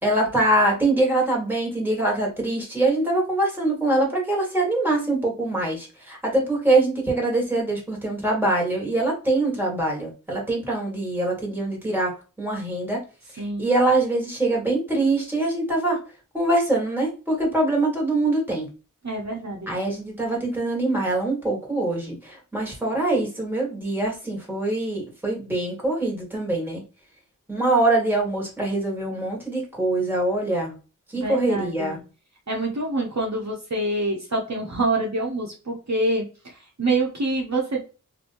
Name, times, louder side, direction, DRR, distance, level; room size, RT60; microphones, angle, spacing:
voice 1, 0.0-12.1 12.4-13.0 13.3-16.0 16.3-18.7 19.7-26.8 27.5-30.8 31.1-32.0, right 2 dB, 5° right, -2 dB, 1.8 m, -23 dB
voice 2, 13.4-13.7 19.0-19.7 31.1-32.0 32.5-37.8, right 2 dB, 55° right, -2 dB, 1.0 m, -26 dB
3.1 x 2.8 x 2.6 m, 0.33 s
wide cardioid pair, 55°, 33 cm